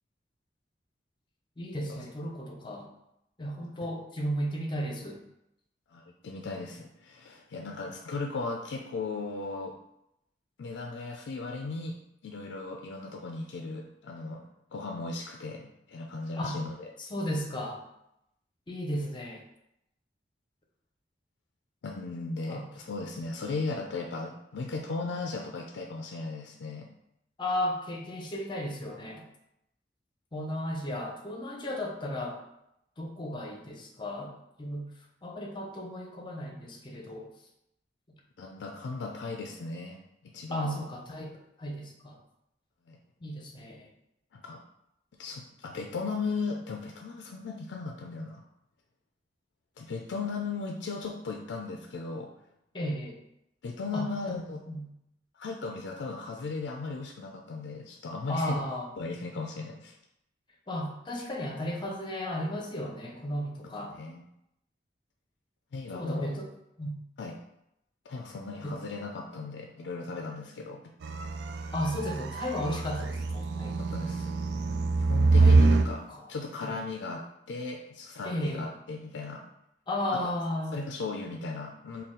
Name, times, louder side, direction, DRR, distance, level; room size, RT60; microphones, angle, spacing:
voice 1, 1.6-2.9 3.4-5.2 16.4-16.6 17.0-17.8 18.7-19.4 22.5-22.6 27.4-29.2 30.3-32.4 33.0-34.3 34.6-34.8 35.2-37.3 40.5-41.3 41.6-42.2 43.2-43.9 52.7-53.2 53.9-54.4 54.7-54.9 58.3-58.9 60.7-64.0 65.9-66.5 66.8-66.9 68.6-68.8 71.7-73.8 75.4-75.6 76.1-76.3 76.6-76.7 78.2-78.7 79.9-80.8, equal, 25° left, 1 dB, 0.6 m, -34 dB
voice 2, 5.9-9.7 10.6-14.4 14.7-16.8 21.8-26.9 38.4-40.0 40.3-40.8 42.9-43.0 44.3-44.6 45.2-48.5 49.8-52.3 53.6-54.6 55.3-58.6 59.0-60.0 64.0-64.2 65.7-66.3 67.2-67.3 68.1-70.8 73.9-74.4 75.0-76.0 76.3-79.5 80.1-80.2 80.7-82.0, left 3 dB, 85° left, 1 dB, 0.4 m, -36 dB
sound 1, 71.0-75.9, right 3 dB, 65° right, 0.3 m, -25 dB
4.1 x 2.3 x 3.7 m, 0.82 s
head